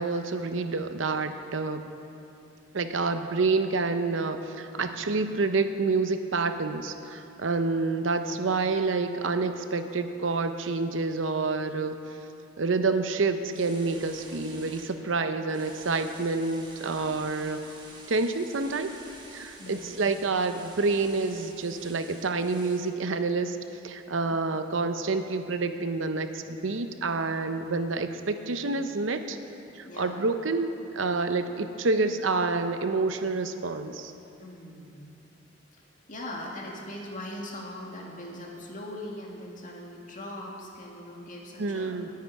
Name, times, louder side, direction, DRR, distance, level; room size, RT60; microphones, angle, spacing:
voice 1, 0.0-1.8 2.7-12.0 12.6-17.6 18.1-18.9 19.3-23.6 23.8-29.4 29.8-34.1 41.6-42.1, right 3 dB, 75° right, 8 dB, 0.7 m, -28 dB
voice 2, 4.8-5.3 19.6-20.0 29.8-30.2 34.4-35.1 35.7-35.8 36.1-42.0, left 1 dB, 45° left, -1 dB, 2.0 m, -40 dB
sound 1, 13.5-14.9 15.5-22.8, right 2 dB, 25° right, 1.9 m, -49 dB
19.5 x 9.5 x 4.7 m, 2.7 s
head